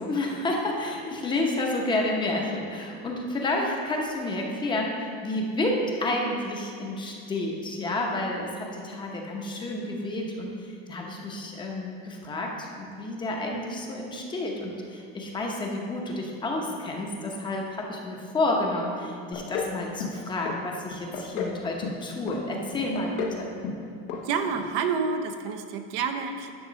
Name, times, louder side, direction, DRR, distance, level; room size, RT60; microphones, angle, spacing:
voice 1, 0.0-23.5, left 2 dB, 15° left, 0 dB, 0.8 m, -30 dB
sound 1, 19.3-19.7 20.0-20.6 20.9-21.6 21.8-22.4 22.7-23.4 23.6-23.8 24.1-24.2 24.5-24.6, left 7 dB, 90° left, 1.2 m, -32 dB
voice 2, 24.2-26.5, right 5 dB, 75° right, 5 dB, 0.8 m, -28 dB
11.0 x 3.7 x 6.2 m, 2.3 s
cardioid pair, 165°, 29 cm